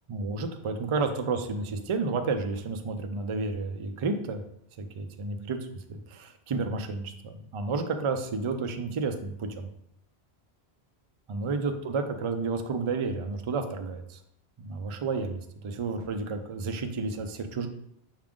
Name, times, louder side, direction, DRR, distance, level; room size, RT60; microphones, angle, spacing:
voice 1, 0.1-4.4 4.8-5.6 5.9-9.7 11.3-14.2 14.6-17.7, right 4 dB, 50° right, 6 dB, 0.4 m, -31 dB
5.8 x 2.4 x 3.6 m, 0.76 s
omnidirectional pair, 1.1 m